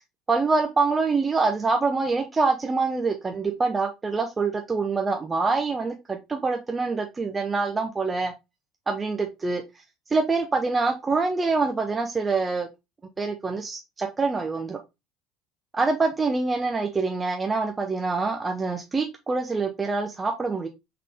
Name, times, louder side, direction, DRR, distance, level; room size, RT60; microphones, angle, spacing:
voice 1, 0.3-8.3 8.9-9.6 10.1-12.7 13.2-14.8 15.7-20.7, right 4 dB, 25° right, 0.6 m, -25 dB
3.8 x 3.7 x 3.4 m
figure-of-eight pair, 65°, 0 cm